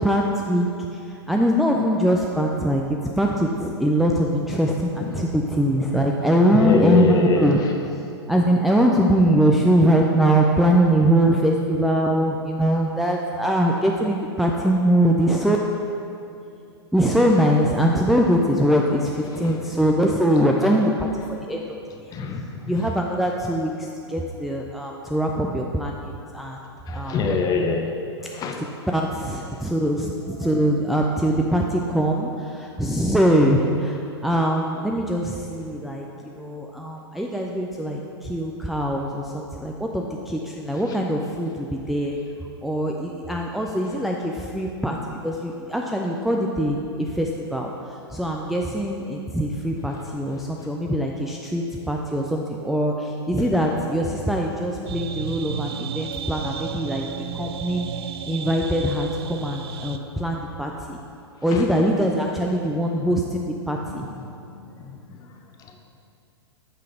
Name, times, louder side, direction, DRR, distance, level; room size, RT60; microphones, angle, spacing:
voice 1, 0.0-7.6 7.9-8.0 8.3-15.6 16.9-21.8 22.0-22.1 22.7-26.6 26.9-27.2 28.9-36.1 36.3-42.2 42.6-57.0 57.3-61.0 61.4-64.1, equal, ahead, -1 dB, 0.3 m, -22 dB
voice 2, 6.5-7.5 19.4-19.5 22.1-22.7 26.9-27.9 28.3-28.6 43.9-44.0 54.5-54.7 61.5-61.6 63.8-64.3 64.6-65.2, left 4 dB, 25° left, 3 dB, 0.8 m, -25 dB
sound 1, 54.9-60.0, right 7 dB, 65° right, 0.5 m, -33 dB
8.7 x 3.8 x 5.0 m, 2.7 s
figure-of-eight pair, 105°, 14 cm